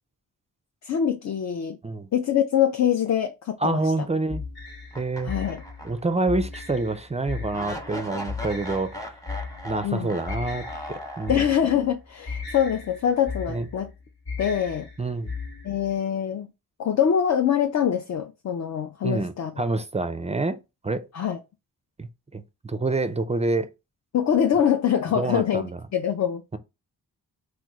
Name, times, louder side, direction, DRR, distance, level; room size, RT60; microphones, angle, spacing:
voice 1, 0.8-1.8 2.1-3.8 5.2-5.6 9.8-10.2 11.3-13.9 14.4-14.9 15.6-16.5 16.8-19.5 21.1-21.4 24.1-25.6 25.9-26.4, left 9 dB, 45° left, 0.4 m, -24 dB
voice 2, 3.6-4.5 5.0-5.3 5.8-9.1 9.6-11.4 13.5-13.7 15.0-15.3 19.0-20.6 20.8-21.1 22.0-23.7 25.2-25.8, right 3 dB, 15° right, 0.4 m, -27 dB
sound 1, 4.3-16.0, left 4 dB, 65° left, 1.1 m, -37 dB
sound 2, 4.9-6.2 6.6-6.7 7.5-11.8, equal, 10° left, 0.8 m, -38 dB
3.0 x 2.1 x 3.5 m
cardioid pair, 50°, 41 cm